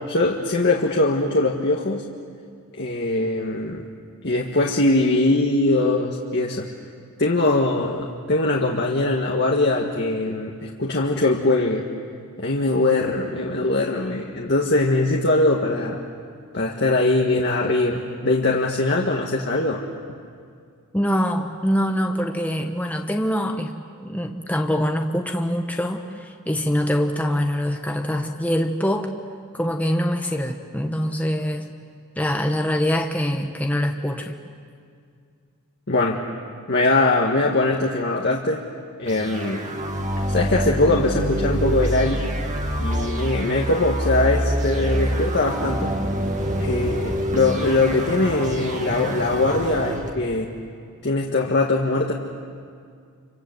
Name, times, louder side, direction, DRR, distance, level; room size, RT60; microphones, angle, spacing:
voice 1, 0.1-2.0 2.7-3.8 4.2-6.7 7.2-11.8 12.4-16.0 16.5-19.8 35.9-36.2 36.7-38.6 39.0-39.6 40.3-42.2 42.8-45.9 46.6-50.5 51.0-52.1, left 2 dB, 50° left, -1 dB, 1.6 m, -21 dB
voice 2, 20.9-23.8 24.0-29.1 29.5-31.7 32.2-34.4, equal, 5° left, 3 dB, 1.1 m, -24 dB
sound 1, 39.1-50.1, equal, 35° right, 2.1 m, -26 dB
28.5 x 25.5 x 7.9 m, 2.2 s
head